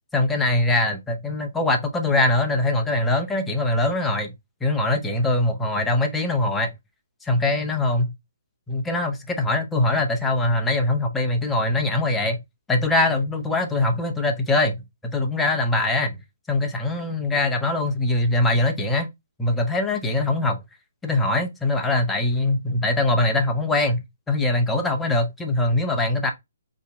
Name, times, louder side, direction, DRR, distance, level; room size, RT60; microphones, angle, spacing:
voice 1, 0.1-4.3 4.6-6.7 7.2-8.1 8.7-12.4 12.7-14.7 15.0-16.1 16.5-19.1 19.4-20.6 21.0-26.3, left 2 dB, 5° left, 0.5 m, -22 dB
4.0 x 2.8 x 3.3 m
hypercardioid pair, 170°, 0 cm